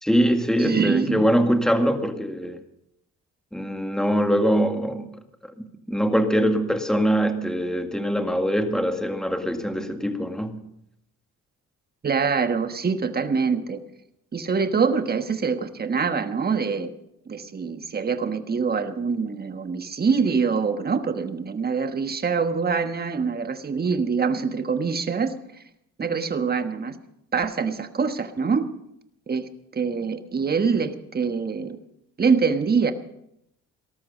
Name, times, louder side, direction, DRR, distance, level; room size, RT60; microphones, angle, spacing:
voice 1, 0.0-2.6 3.5-5.1 5.4-10.6, equal, ahead, 6 dB, 1.9 m, -23 dB
voice 2, 0.6-1.4 12.0-13.8 14.3-16.9 17.3-25.4 26.0-27.0 27.3-28.7 29.3-31.8 32.2-32.9, right 5 dB, 30° right, 8 dB, 1.4 m, -24 dB
18.5 x 13.5 x 5.4 m, 0.79 s
cardioid pair, 90°, 30 cm